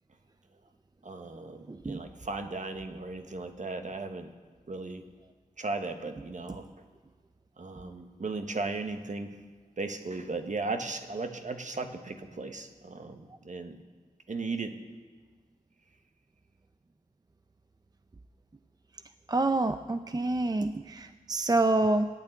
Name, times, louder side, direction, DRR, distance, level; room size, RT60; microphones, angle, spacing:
voice 1, 1.0-4.3 4.7-5.0 5.6-6.7 7.6-9.4 9.8-13.8 14.3-14.8, right 3 dB, 50° right, 6 dB, 1.3 m, -36 dB
voice 2, 1.7-2.0 19.3-22.1, right 2 dB, 25° right, 9 dB, 0.5 m, -27 dB
15.0 x 9.1 x 9.1 m, 1.5 s
wide cardioid pair, 70°, 16 cm